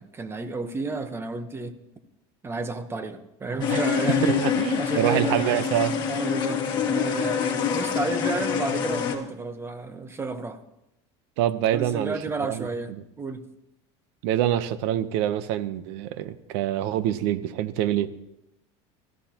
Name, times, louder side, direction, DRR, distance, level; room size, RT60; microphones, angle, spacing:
voice 1, 0.0-1.7 2.4-4.4 4.8-5.6 6.1-10.6 11.7-12.9 13.2-13.4, right 3 dB, 15° right, 9 dB, 1.2 m, -31 dB
sound 1, 3.6-9.2, left 7 dB, 30° left, 2.3 m, -26 dB
voice 2, 4.4-5.9 11.4-12.1 12.5-13.0 14.2-18.1, right 12 dB, 75° right, 13 dB, 1.0 m, -26 dB
24.5 x 15.0 x 3.0 m, 0.87 s
supercardioid pair, 130°, 15 cm